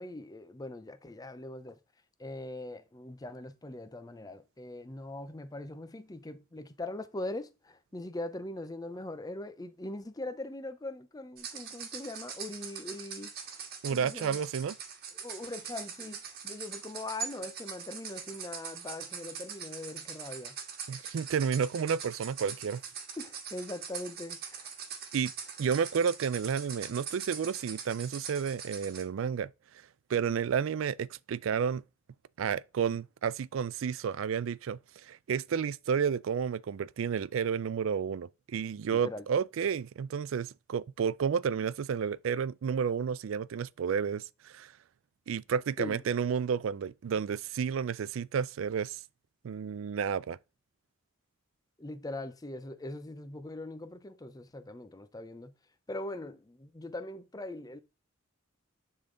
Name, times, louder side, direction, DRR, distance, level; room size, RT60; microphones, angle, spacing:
voice 1, 0.0-1.8 2.2-14.4 15.1-20.6 23.2-24.7 38.9-39.3 45.8-46.0 51.8-55.5 55.9-57.8, left 2 dB, 20° left, 0.5 m, -41 dB
sound 1, 11.4-29.0, right 7 dB, 50° right, 1.5 m, -42 dB
voice 2, 13.8-14.8 20.9-22.8 25.1-25.3 25.6-29.5 30.1-31.8 32.4-44.7 45.3-49.0 49.4-50.4, right 7 dB, 75° right, 0.4 m, -31 dB
10.0 x 3.8 x 3.7 m
head